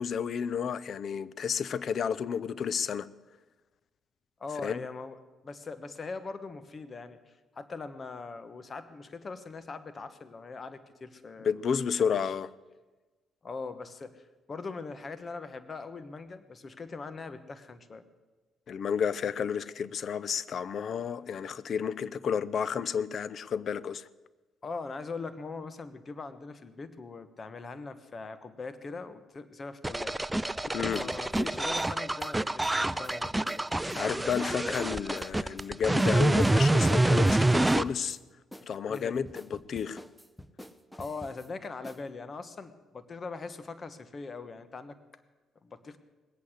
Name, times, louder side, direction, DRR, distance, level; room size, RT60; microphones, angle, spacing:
voice 1, 0.0-3.1 4.6-4.8 11.4-12.5 18.7-24.1 30.7-31.0 34.0-38.2 38.7-40.0, left 7 dB, 55° left, 0.6 m, -31 dB
voice 2, 4.4-5.2 5.4-11.5 12.1-12.2 13.4-18.0 24.6-30.2 30.9-34.1 38.9-39.2 40.9-45.0 45.6-46.0, left 4 dB, 35° left, 1.2 m, -41 dB
sound 1, 29.8-37.8, right 2 dB, 10° right, 0.4 m, -26 dB
sound 2, 30.9-34.0 34.3-34.8 35.2-35.3 35.6-37.4 37.6-38.2 38.5-41.5 41.8-42.0, left 1 dB, 5° left, 0.9 m, -48 dB
20.0 x 8.6 x 8.0 m
cardioid pair, 90°, 0 cm